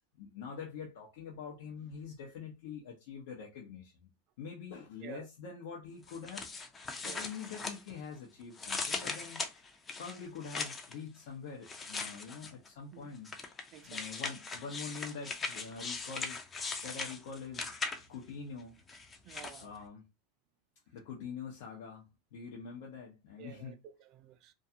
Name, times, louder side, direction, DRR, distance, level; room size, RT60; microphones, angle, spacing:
voice 1, 0.2-4.1 4.4-6.5 7.0-9.4 10.0-13.3 13.8-16.4 16.8-17.7 18.1-18.8 19.6-20.1 20.9-23.8, left 6 dB, 70° left, 0.7 m, -45 dB
sound 1, 6.1-8.2 8.5-10.9 11.6-12.7 13.2-18.3 18.9-19.6, left 4 dB, 20° left, 0.5 m, -39 dB
voice 2, 13.7-14.0 19.3-19.7 23.4-24.5, right 10 dB, 45° right, 0.4 m, -51 dB
2.4 x 2.4 x 2.7 m
hypercardioid pair, 120°, 0 cm